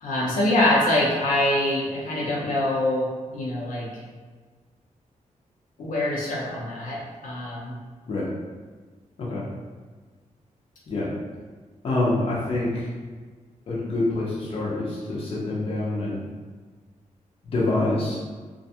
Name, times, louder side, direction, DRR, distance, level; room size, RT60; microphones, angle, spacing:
voice 1, 0.0-3.9 5.8-7.8, left 1 dB, 85° left, -5 dB, 0.7 m, -24 dB
voice 2, 11.8-12.9 13.7-16.2 17.4-18.2, left 2 dB, 45° left, -6 dB, 0.6 m, -26 dB
2.5 x 2.3 x 2.7 m, 1.4 s
wide cardioid pair, 175°, 13 cm